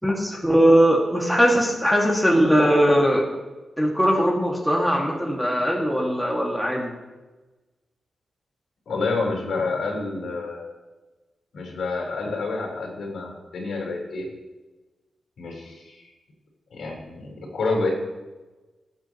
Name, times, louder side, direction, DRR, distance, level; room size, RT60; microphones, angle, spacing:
voice 1, 0.0-3.2 3.8-6.9, equal, ahead, -2 dB, 2.2 m, -20 dB
voice 2, 8.9-10.7 11.5-14.3 15.4-16.0 16.7-17.9, left 3 dB, 70° left, -1 dB, 4.4 m, -28 dB
21.0 x 8.6 x 3.1 m, 1.2 s
wide cardioid pair, 130°, 0 cm